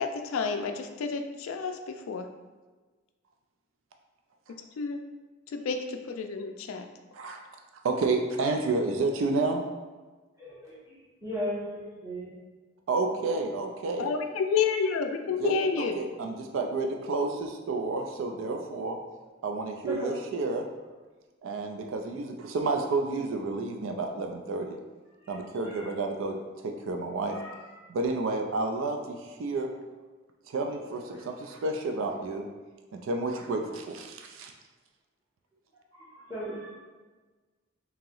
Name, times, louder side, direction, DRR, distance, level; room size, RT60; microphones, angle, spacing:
voice 1, 0.0-2.3 4.8-5.0 5.5-6.9 14.0-16.0, left 5 dB, 80° left, 6 dB, 0.3 m, -30 dB
voice 2, 7.8-9.6 12.9-14.1 15.4-19.0 19.4-20.7 21.4-24.8 25.3-26.4 26.6-27.4 27.9-29.7 30.5-32.5 32.9-34.5, right 3 dB, 70° right, 3 dB, 0.4 m, -30 dB
voice 3, 10.4-12.3 18.4-18.6 19.8-20.1 25.2-25.4 25.6-25.9 27.3-27.7 35.9-36.7, equal, 15° right, -10 dB, 1.4 m, -37 dB
2.9 x 2.8 x 3.8 m, 1.3 s
head